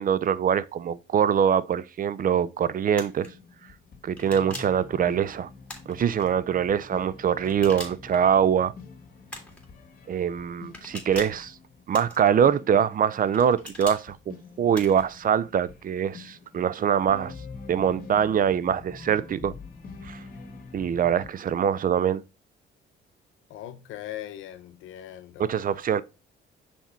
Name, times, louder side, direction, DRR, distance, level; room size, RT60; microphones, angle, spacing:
voice 1, 0.0-3.3 4.0-5.5 5.9-8.7 10.1-11.6 11.9-17.3 17.7-19.5 20.0-20.2 20.7-22.2 25.4-26.0, right 8 dB, 45° right, 0.5 m, -24 dB
sound 1, 2.9-3.3 4.2-4.8 5.7-6.3 7.4-8.2 9.3-9.7 10.7-11.4 11.9-12.5 13.3-14.0 14.7-15.1, left 1 dB, 5° left, 2.2 m, -41 dB
sound 2, 3.3-21.3, left 4 dB, 50° left, 1.8 m, -46 dB
voice 2, 23.5-25.6, left 12 dB, 90° left, 0.7 m, -40 dB
5.8 x 4.3 x 4.4 m
cardioid pair, 90°, 20 cm